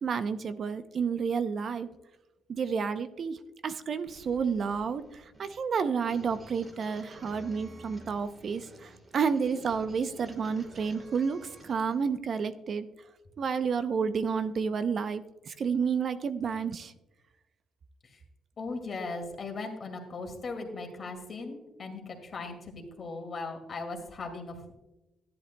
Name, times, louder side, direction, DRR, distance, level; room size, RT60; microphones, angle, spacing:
voice 1, 0.0-1.9 2.5-12.9 13.4-16.9, right 6 dB, 50° right, 11 dB, 0.5 m, -30 dB
sound 1, 4.1-12.0, right 1 dB, 35° right, 2.6 m, -51 dB
voice 2, 18.6-24.7, left 3 dB, 45° left, 4 dB, 2.1 m, -38 dB
13.0 x 10.5 x 2.2 m, 1.0 s
cardioid pair, 90°, 0 cm